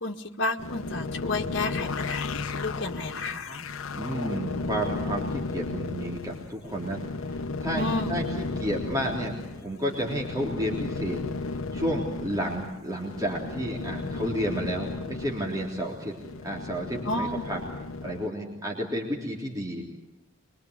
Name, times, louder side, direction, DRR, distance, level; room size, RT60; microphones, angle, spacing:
voice 1, 0.0-3.7 7.7-8.2 17.0-17.6, left 2 dB, 60° left, 1 dB, 1.9 m, -31 dB
sound 1, 0.6-18.3, left 3 dB, 80° left, 0.9 m, -34 dB
voice 2, 3.9-7.8 8.1-16.2 16.4-17.6 18.0-19.8, equal, 15° right, -2 dB, 3.6 m, -31 dB
24.0 x 24.0 x 8.2 m, 0.92 s
head